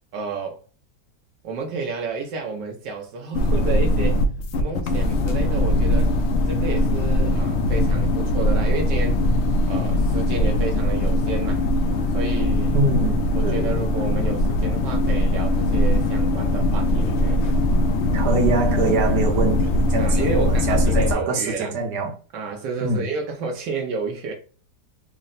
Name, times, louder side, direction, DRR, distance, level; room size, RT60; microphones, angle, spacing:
voice 1, 0.1-0.6 1.4-4.2 4.6-6.1 6.5-9.3 9.6-11.6 12.1-12.8 13.3-17.6 20.0-21.7 22.3-24.3, right 4 dB, 90° right, 1.4 m, -31 dB
sound 1, 3.3-21.1, left 1 dB, 75° left, 0.6 m, -21 dB
voice 2, 12.7-13.7 18.1-22.1 22.8-23.0, right 3 dB, 75° right, 1.6 m, -24 dB
3.7 x 2.1 x 3.8 m
omnidirectional pair, 1.8 m